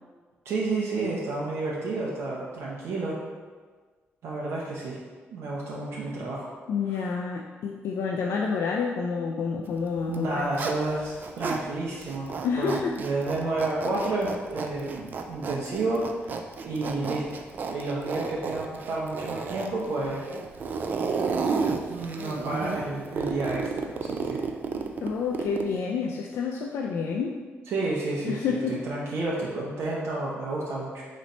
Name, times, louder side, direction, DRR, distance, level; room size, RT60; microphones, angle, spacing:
voice 1, 0.4-3.2 4.2-5.0 5.3-6.5 6.9-7.1 10.1-12.3 12.6-16.4 16.6-17.2 17.7-20.2 21.9-24.5 27.7-31.0, right 2 dB, 80° right, -5 dB, 0.8 m, -30 dB
voice 2, 6.7-10.5 12.4-13.0 25.0-27.4 28.2-28.8, left 5 dB, 75° left, 0 dB, 0.3 m, -29 dB
Zipper (clothing), 10.0-11.6 12.0-25.8, right 5 dB, 45° right, 0.3 m, -32 dB
3.9 x 3.2 x 4.2 m, 1.4 s
wide cardioid pair, 150°, 5 cm